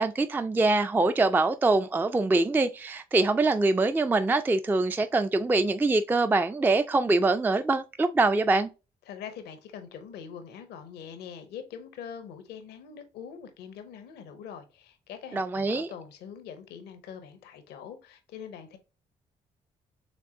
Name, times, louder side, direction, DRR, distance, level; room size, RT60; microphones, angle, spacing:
voice 1, 0.0-8.7 15.3-15.9, right 3 dB, 10° right, 0.3 m, -24 dB
voice 2, 9.1-18.8, left 7 dB, 75° left, 0.6 m, -43 dB
5.1 x 3.4 x 2.7 m
hypercardioid pair, 45°, 17 cm